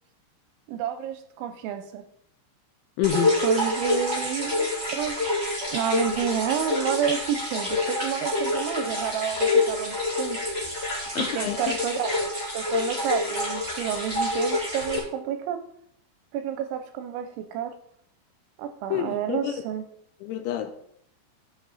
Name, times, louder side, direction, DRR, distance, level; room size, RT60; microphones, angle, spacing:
voice 1, 0.7-2.0 3.4-5.2 5.7-10.4 11.2-12.3 12.5-15.6 16.3-17.7 18.6-19.8, right 9 dB, 80° right, 2.8 m, -30 dB
voice 2, 3.0-3.3 11.2-11.6 18.9-19.5 20.2-20.7, left 11 dB, 80° left, 2.8 m, -27 dB
sound 1, 3.0-15.0, left 2 dB, 10° right, 3.0 m, -27 dB
13.0 x 6.0 x 4.1 m
omnidirectional pair, 5.7 m